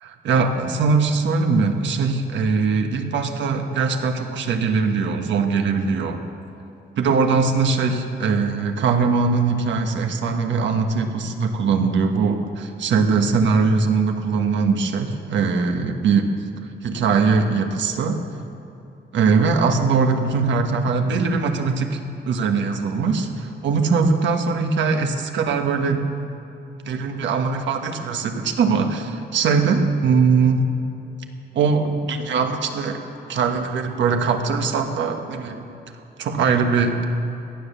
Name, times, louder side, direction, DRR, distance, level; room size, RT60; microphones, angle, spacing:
voice 1, 0.0-6.2 7.0-16.3 16.8-18.3 19.1-22.0 22.2-26.0 26.8-30.6 31.5-33.0 33.3-35.7 36.2-37.0, right 4 dB, 80° right, 5 dB, 1.5 m, -21 dB
17.5 x 11.5 x 6.9 m, 3.0 s
cardioid pair, 140°, 19 cm